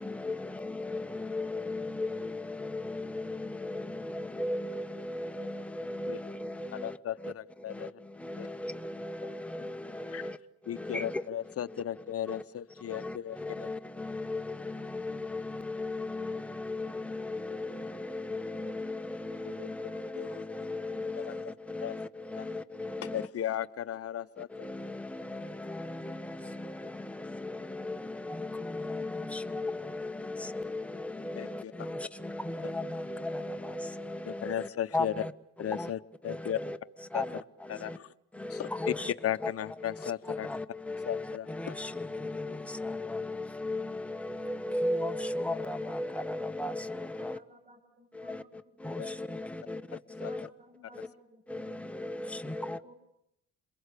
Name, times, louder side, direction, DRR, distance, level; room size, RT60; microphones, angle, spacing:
voice 1, 0.0-10.4 10.6-11.8 12.2-12.4 12.8-23.3 24.4-35.3 35.6-35.9 36.2-38.0 38.3-39.1 39.4-39.5 39.8-47.4 48.1-50.5 50.9-51.1 51.5-52.9, left 2 dB, 5° left, 1.3 m, -37 dB
voice 2, 6.7-8.0 8.4-8.5 10.1-10.3 10.7-13.7 19.3-20.5 21.1-21.5 21.8-22.0 22.4-22.5 23.0-24.5 31.3-31.7 34.3-35.2 35.6-36.6 37.1-37.2 37.7-38.1 38.5-38.9 39.2-40.5 41.1-42.6 43.0-43.1 44.4-44.5 49.0-49.1 49.9-50.5, left 11 dB, 50° left, 0.9 m, -36 dB
voice 3, 47.2-51.8 52.5-52.9, equal, 25° right, 7.9 m, -59 dB
27.5 x 22.0 x 8.4 m
cardioid pair, 90°, 30 cm